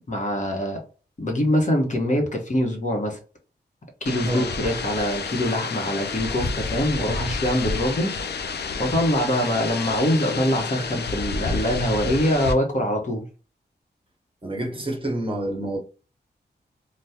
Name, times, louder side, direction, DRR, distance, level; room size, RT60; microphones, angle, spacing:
voice 1, 0.1-0.8 1.2-3.2 4.0-8.1 8.8-13.2, left 1 dB, 45° left, 1.0 m, -24 dB
sound 1, 4.1-12.5, left 4 dB, 70° left, 0.5 m, -30 dB
voice 2, 14.4-15.8, right 1 dB, 30° right, 1.0 m, -28 dB
3.5 x 2.3 x 2.8 m
wide cardioid pair, 105°, 18 cm